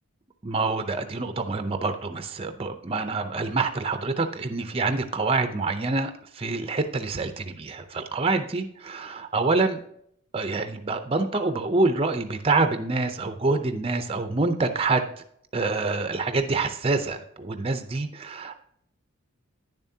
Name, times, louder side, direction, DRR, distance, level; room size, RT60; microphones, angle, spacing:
voice 1, 0.4-9.8 10.3-15.1 15.5-18.5, right 3 dB, 25° right, 8 dB, 0.6 m, -26 dB
9.8 x 7.2 x 2.8 m, 0.68 s
head